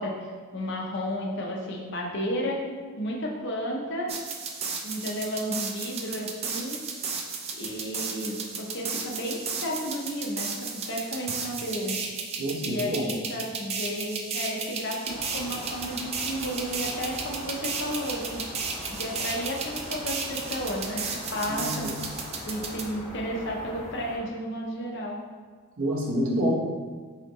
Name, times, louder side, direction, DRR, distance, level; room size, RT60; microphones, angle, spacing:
voice 1, 0.0-2.6 3.0-4.1 4.8-6.8 7.6-11.9 12.6-18.4 18.9-21.9 22.4-25.2, equal, 50° left, -1 dB, 0.7 m, -32 dB
sound 1, 4.1-22.8, right 5 dB, 25° right, 0.3 m, -34 dB
voice 2, 12.4-13.1 21.5-21.9 25.8-26.5, equal, 70° right, -4 dB, 1.1 m, -27 dB
sound 2, 15.0-24.2, equal, ahead, 1.5 m, -41 dB
4.0 x 3.9 x 3.1 m, 1.5 s
head